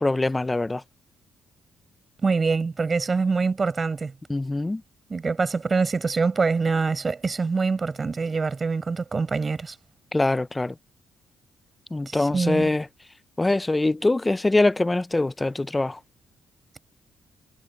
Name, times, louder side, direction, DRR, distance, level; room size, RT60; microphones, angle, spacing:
voice 1, 0.0-0.8 4.3-4.8 10.1-10.7 11.9-12.9 13.4-16.0, left 2 dB, 15° left, 0.5 m, -23 dB
voice 2, 2.2-4.1 5.1-9.8 12.1-12.7, right 4 dB, 30° right, 4.7 m, -25 dB
cardioid pair, 90°, 0 cm